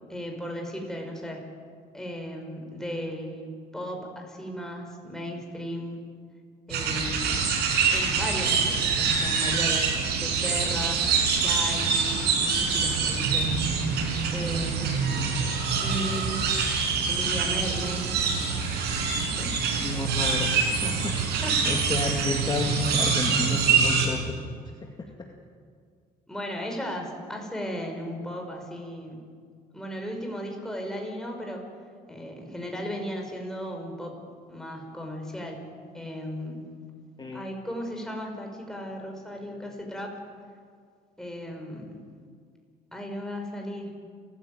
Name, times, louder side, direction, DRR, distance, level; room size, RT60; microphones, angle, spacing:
voice 1, 0.1-1.5 1.9-6.0 6.7-7.4 7.8-13.7 14.3-15.0 15.8-16.4 17.1-18.1 19.2-19.5 21.4-21.5 26.3-29.3 29.7-31.6 32.1-34.2 34.5-36.6 37.3-40.2 41.2-42.0 42.9-43.9, equal, 5° left, 1 dB, 5.6 m, -36 dB
sound 1, 6.7-24.1, right 5 dB, 75° right, 5.4 m, -25 dB
voice 2, 19.8-24.4 24.8-25.1 37.2-37.5, left 3 dB, 25° left, 1 dB, 2.3 m, -32 dB
29.5 x 14.5 x 9.2 m, 2.1 s
cardioid pair, 110°, 17 cm